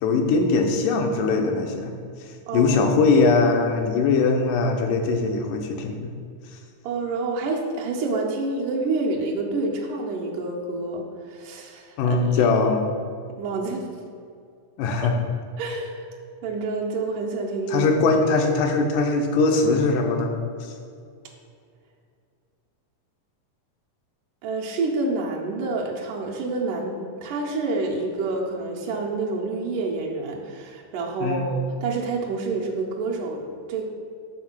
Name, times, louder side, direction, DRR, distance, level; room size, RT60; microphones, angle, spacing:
voice 1, 0.0-1.9 2.5-6.1 12.0-12.9 14.8-15.1 17.7-20.7 31.2-31.5, left 3 dB, 85° left, 4 dB, 2.3 m, -21 dB
voice 2, 2.5-2.8 6.8-12.4 13.4-13.9 15.0-15.1 15.6-16.1 16.4-17.9 24.4-33.4 33.7-33.8, right 3 dB, 85° right, -1 dB, 2.3 m, -28 dB
7.0 x 3.6 x 5.9 m, 2.3 s
omnidirectional pair, 3.7 m